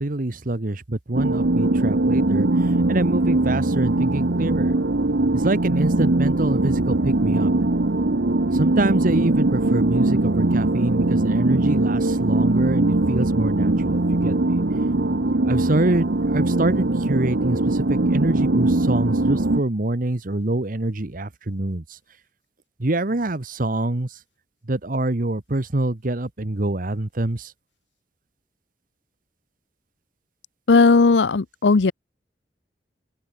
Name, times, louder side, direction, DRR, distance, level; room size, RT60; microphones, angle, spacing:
voice 1, 0.0-4.7 5.3-7.5 8.5-14.6 15.4-22.0 22.8-24.2 24.7-27.5, right 2 dB, 50° right, 1.2 m, -25 dB
sound 1, 1.1-19.6, right 2 dB, 70° right, 1.1 m, -21 dB
voice 2, 30.7-31.9, left 4 dB, 90° left, 0.6 m, -16 dB
open air
head